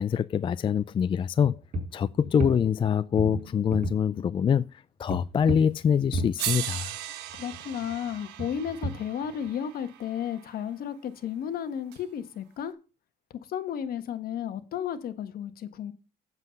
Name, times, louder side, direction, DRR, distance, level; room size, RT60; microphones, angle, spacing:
voice 1, 0.0-1.6 1.9-6.9, left 8 dB, 30° left, 0.4 m, -25 dB
sound 1, 1.4-2.9 3.2-4.0 5.1-7.0 7.3-9.5, right 1 dB, 50° right, 5.1 m, -34 dB
sound 2, 5.8-5.9 6.4-10.6 11.9-12.0, right 13 dB, 90° right, 1.3 m, -37 dB
voice 2, 7.3-12.7 13.5-15.9, left 9 dB, 60° left, 1.5 m, -33 dB
8.3 x 7.5 x 5.2 m
cardioid pair, 110°, 17 cm